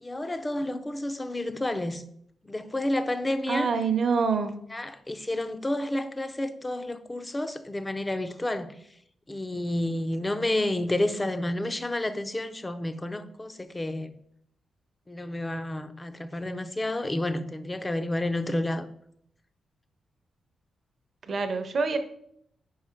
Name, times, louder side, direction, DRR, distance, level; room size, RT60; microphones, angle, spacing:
voice 1, 0.0-2.0 2.4-3.7 4.7-8.8 9.3-14.1 15.1-18.9, left 1 dB, 15° left, 0.4 m, -30 dB
voice 2, 3.5-4.6 21.3-22.0, right 5 dB, 45° right, 0.6 m, -26 dB
5.5 x 4.8 x 4.4 m
wide cardioid pair, 150°, 0 cm